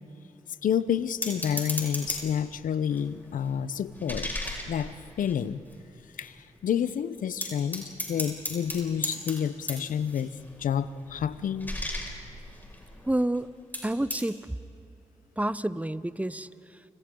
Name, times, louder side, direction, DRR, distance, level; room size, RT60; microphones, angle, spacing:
voice 1, 0.6-4.3 4.7-5.6 6.2-6.4 6.6-11.7, left 8 dB, 75° left, 15 dB, 0.7 m, -29 dB
sound 1, 1.2-2.5 2.9-5.7 6.2-6.3 6.6-6.9 7.4-13.4 13.7-14.3, left 1 dB, 15° left, 5.8 m, -37 dB
voice 2, 13.1-13.5 13.8-14.6 15.4-16.8, right 1 dB, 10° right, 16 dB, 0.8 m, -29 dB
30.0 x 27.0 x 3.8 m, 2.6 s
supercardioid pair, 45°, 14 cm